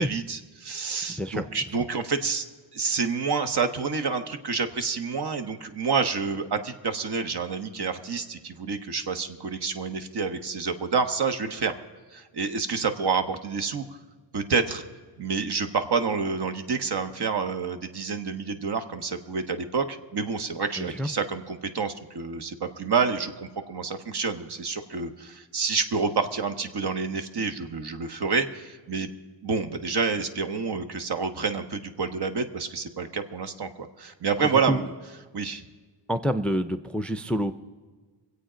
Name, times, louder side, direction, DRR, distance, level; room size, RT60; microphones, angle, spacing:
voice 1, 0.0-2.4 2.7-11.8 12.1-13.8 14.3-14.8 15.2-29.1 29.4-34.9 35.3-35.6, right 5 dB, 60° right, 8 dB, 1.2 m, -28 dB
voice 2, 1.2-1.5 20.8-21.1 34.7-34.8 36.1-37.5, equal, 5° left, 10 dB, 0.4 m, -27 dB
24.0 x 8.3 x 5.0 m, 1.4 s
wide cardioid pair, 110°, 44 cm